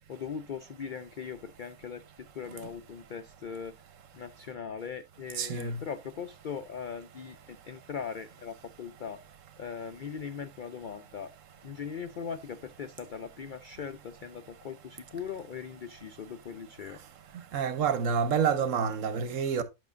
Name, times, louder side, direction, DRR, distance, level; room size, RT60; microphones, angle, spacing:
voice 1, 0.1-3.8 4.1-9.2 9.6-11.3 11.6-17.0, left 6 dB, 75° left, 0.4 m, -40 dB
voice 2, 5.4-5.8 17.5-19.6, right 6 dB, 65° right, 1.2 m, -28 dB
10.5 x 6.2 x 2.6 m
omnidirectional pair, 1.5 m